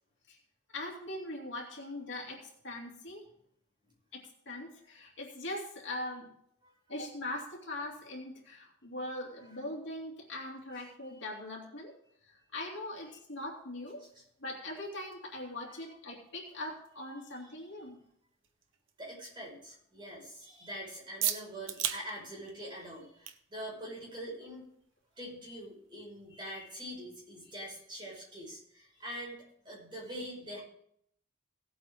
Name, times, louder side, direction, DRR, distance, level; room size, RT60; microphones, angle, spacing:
voice 1, 0.7-3.2 4.1-6.3 6.9-12.0 12.2-14.0 14.4-18.0, left 1 dB, 65° left, -2 dB, 2.8 m, -41 dB
voice 2, 6.6-7.0 9.5-9.6 14.0-14.2 15.4-15.8 17.6-17.7 19.0-24.7 25.2-29.4 29.6-30.6, equal, 25° right, -4 dB, 5.5 m, -44 dB
sound 1, 12.9-28.2, right 10 dB, 70° right, 0.8 m, -44 dB
17.5 x 8.5 x 3.7 m, 0.71 s
head